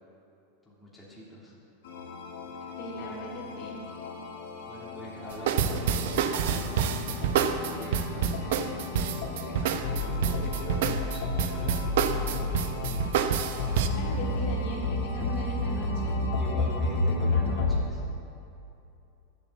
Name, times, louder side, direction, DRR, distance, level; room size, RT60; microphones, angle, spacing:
voice 1, 0.6-1.5 2.6-2.7 3.0-3.2 4.7-12.3 16.3-18.0, equal, 5° left, -7 dB, 2.8 m, -44 dB
sound 1, 1.8-17.8, left 2 dB, 80° left, 2.2 m, -32 dB
voice 2, 2.8-3.9 13.9-16.3, left 1 dB, 55° left, -3 dB, 2.5 m, -39 dB
sound 2, 5.3-13.9, right 8 dB, 70° right, 0.8 m, -27 dB
11.5 x 7.8 x 7.3 m, 2.7 s
supercardioid pair, 145°, 0 cm